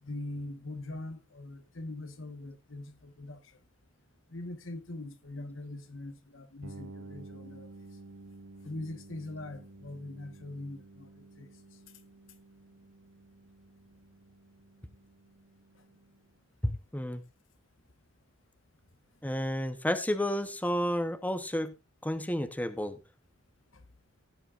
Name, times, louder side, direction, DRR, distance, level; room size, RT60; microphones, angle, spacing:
voice 1, 0.0-3.6 4.3-7.7 8.6-11.5 23.7-23.8, left 2 dB, 65° left, 1.3 m, -42 dB
sound 1, 6.6-16.3, right 2 dB, 75° right, 2.2 m, -52 dB
voice 2, 16.6-17.2 19.2-21.7 22.0-23.0, equal, 10° left, 0.9 m, -31 dB
17.0 x 8.9 x 2.5 m
head